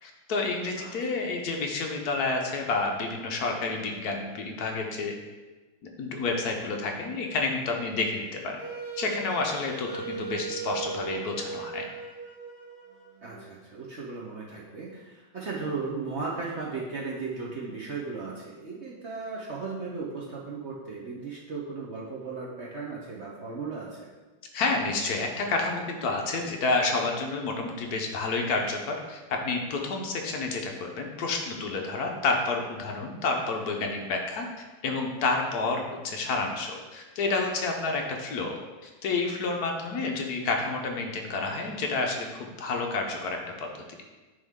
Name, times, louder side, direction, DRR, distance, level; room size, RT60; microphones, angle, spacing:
voice 1, 0.0-5.1 6.0-8.6 9.0-11.8 24.5-34.5 34.8-43.7, left 3 dB, 60° left, 1 dB, 1.1 m, -29 dB
Wind instrument woodwind instrument, 8.6-13.5, right 4 dB, 25° right, 1.0 m, -38 dB
voice 2, 13.2-24.1, right 4 dB, 60° right, -4 dB, 0.7 m, -36 dB
9.3 x 3.6 x 3.6 m, 1.2 s
omnidirectional pair, 2.1 m